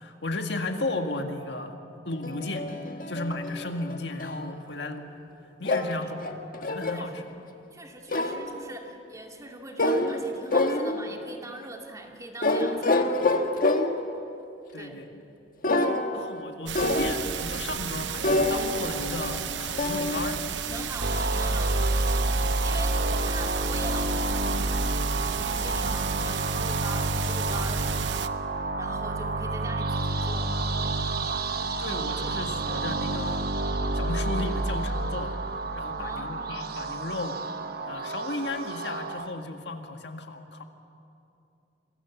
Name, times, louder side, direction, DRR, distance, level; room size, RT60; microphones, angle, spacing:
voice 1, 0.0-1.8 2.1-2.7 3.1-5.2 5.6-6.2 6.6-7.2 14.7-15.2 16.1-20.4 31.8-33.5 33.9-35.4 35.8-37.5 37.9-40.6, left 2 dB, 70° left, 5 dB, 1.9 m, -34 dB
sound 1, 2.2-4.4 5.6-7.1 8.1-8.6 9.8-10.2 10.5-11.2 12.4-14.1 15.6-16.4 16.7-17.4 18.2-20.9, left 2 dB, 50° left, 1.5 m, -27 dB
voice 2, 5.9-6.3 6.9-7.2 7.7-13.1 14.7-15.0 20.7-21.9 22.6-28.3 28.5-30.6 36.0-36.5, right 1 dB, 20° right, 2 dB, 2.4 m, -42 dB
sound 2, 16.7-28.3, right 8 dB, 90° right, 0.8 m, -33 dB
sound 3, 21.0-39.3, right 2 dB, 60° right, 1.3 m, -29 dB
27.5 x 22.0 x 7.2 m, 2.7 s
head